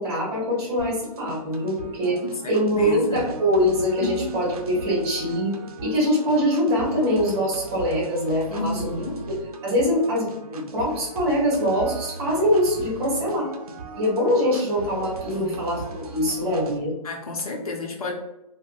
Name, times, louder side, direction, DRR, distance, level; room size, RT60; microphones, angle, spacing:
voice 1, 0.0-2.2 2.5-5.5 5.8-9.0 9.6-13.5 13.9-16.9, equal, 15° right, -5 dB, 0.9 m, -23 dB
sound 1, 0.8-16.8, right 3 dB, 75° right, 0.5 m, -39 dB
voice 2, 2.1-3.3 4.0-4.3 8.5-9.2 15.3-15.7 17.0-18.1, left 2 dB, 75° left, 0 dB, 0.9 m, -31 dB
2.6 x 2.2 x 2.5 m, 0.93 s
hypercardioid pair, 160°, 19 cm